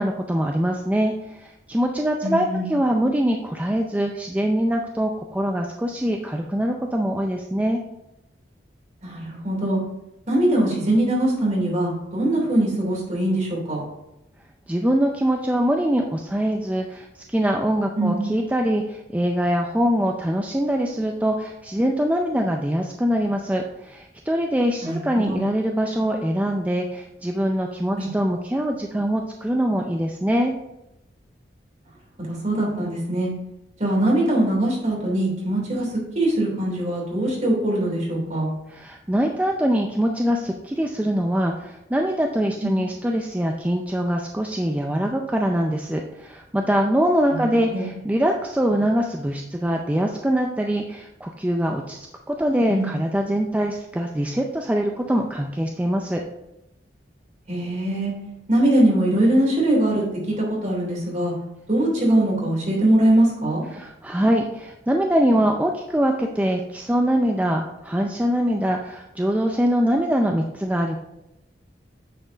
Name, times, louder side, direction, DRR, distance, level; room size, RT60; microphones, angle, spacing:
voice 1, 0.0-7.8 14.7-30.5 38.7-56.2 63.7-71.0, equal, 10° right, 2 dB, 0.4 m, -23 dB
voice 2, 2.2-2.7 9.0-9.8 10.3-13.8 18.0-18.3 24.8-25.4 27.9-28.1 32.3-33.3 33.8-35.9 36.1-38.5 42.6-42.8 47.3-47.8 52.7-52.9 57.5-58.1 58.5-60.0 60.4-61.3 61.7-63.6, right 1 dB, 40° right, -3 dB, 3.0 m, -22 dB
9.1 x 4.4 x 3.9 m, 0.89 s
head